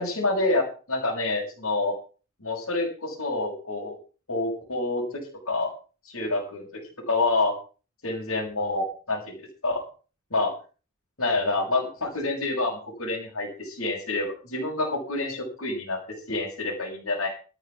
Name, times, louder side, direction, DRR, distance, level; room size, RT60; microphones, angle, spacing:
voice 1, 0.0-1.9 2.4-3.9 4.3-5.1 5.4-5.7 6.0-6.8 7.1-7.5 8.0-9.3 9.6-9.8 10.3-10.5 11.2-16.0 16.3-17.3, left 2 dB, 70° left, -6 dB, 6.7 m, -27 dB
13.0 x 8.6 x 7.4 m, 0.37 s
head